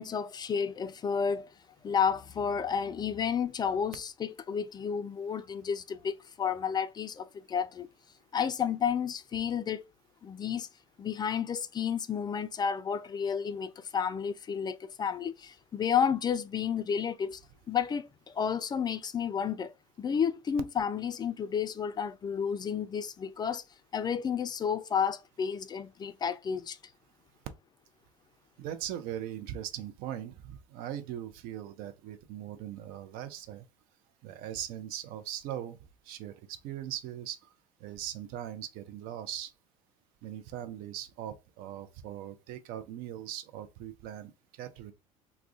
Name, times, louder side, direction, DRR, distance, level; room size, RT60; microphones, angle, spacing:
voice 1, 0.0-1.5 1.8-7.9 8.3-9.8 10.2-10.7 11.0-17.4 17.7-19.7 20.0-23.6 23.9-26.8, left 7 dB, 25° left, 0.3 m, -31 dB
voice 2, 28.6-33.6 34.2-35.8 36.1-37.4 37.8-39.5 40.2-44.3 44.6-44.9, right 11 dB, 55° right, 0.5 m, -40 dB
2.3 x 2.1 x 3.6 m
hypercardioid pair, 65°, 18 cm